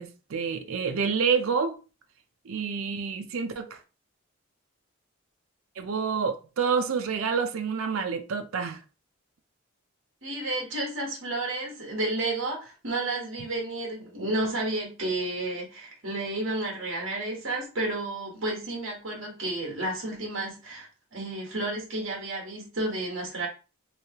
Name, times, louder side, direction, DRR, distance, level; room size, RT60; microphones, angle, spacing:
voice 1, 0.0-1.8 2.5-3.8 5.8-8.8, right 6 dB, 80° right, 0.5 m, -28 dB
voice 2, 10.2-23.5, right 2 dB, 60° right, 1.3 m, -31 dB
3.2 x 3.1 x 2.8 m
head